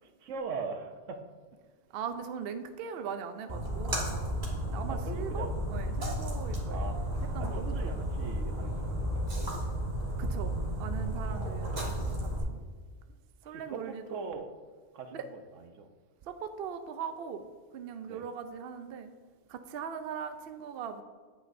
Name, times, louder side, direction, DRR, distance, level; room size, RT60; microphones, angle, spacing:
voice 1, 0.2-1.2 4.9-5.5 6.7-7.0 7.4-9.5 11.3-11.7 13.4-14.5 14.9-15.9 18.1-18.3, right 5 dB, 80° right, 6 dB, 1.1 m, -41 dB
voice 2, 1.9-4.2 4.7-6.9 7.3-8.0 10.2-12.6 13.4-14.2 15.1-15.3 16.2-17.5 17.7-19.1 19.5-21.0, right 7 dB, 60° right, 8 dB, 0.7 m, -40 dB
Splash splatter, 3.5-12.4, equal, 35° right, 1.7 m, -33 dB
9.1 x 8.0 x 2.6 m, 1.5 s
omnidirectional pair, 1.3 m